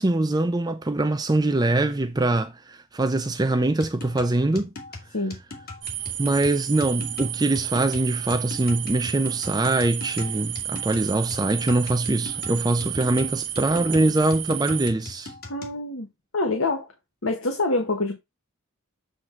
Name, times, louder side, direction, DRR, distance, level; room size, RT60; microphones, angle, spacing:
voice 1, 0.0-4.7 6.2-15.3, right 2 dB, 20° right, 0.5 m, -23 dB
sound 1, 3.8-15.8, left 2 dB, 45° left, 2.0 m, -40 dB
sound 2, 5.8-14.9, right 12 dB, 50° right, 0.9 m, -32 dB
voice 2, 15.5-16.1 16.3-16.9 17.2-18.2, left 2 dB, 65° left, 1.3 m, -25 dB
7.9 x 3.8 x 4.3 m
head